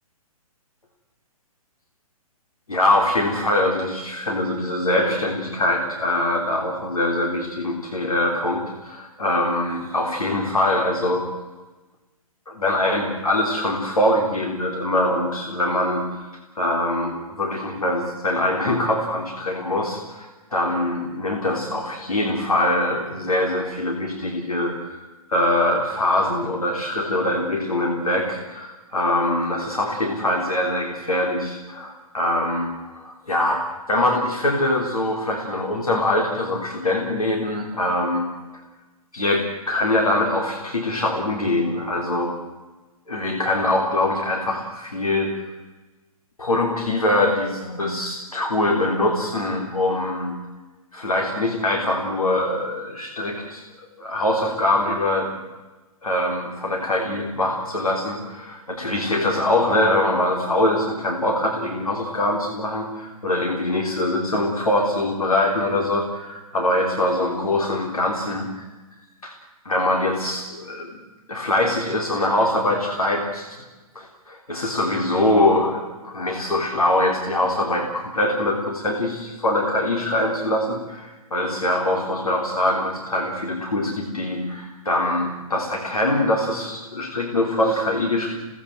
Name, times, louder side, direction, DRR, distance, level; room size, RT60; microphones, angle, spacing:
voice 1, 2.7-11.3 12.5-16.3 16.6-38.3 39.1-42.3 43.1-45.3 46.4-50.4 50.9-55.3 56.0-68.6 69.2-69.4 69.7-71.0 71.3-73.6 74.0-88.4, left 1 dB, 75° left, 1 dB, 3.8 m, -23 dB
28.5 x 18.0 x 7.7 m, 1.2 s
figure-of-eight pair, 125°, 19 cm